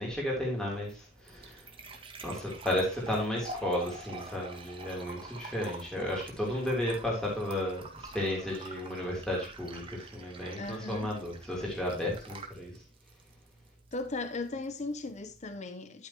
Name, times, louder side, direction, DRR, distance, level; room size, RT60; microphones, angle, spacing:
voice 1, 0.0-1.7 2.2-12.8, left 1 dB, 5° left, 3.1 m, -33 dB
sound 1, 0.6-15.5, right 2 dB, 30° right, 1.7 m, -48 dB
voice 2, 10.6-11.1 13.9-16.1, left 3 dB, 40° left, 0.7 m, -37 dB
11.5 x 8.8 x 2.9 m
head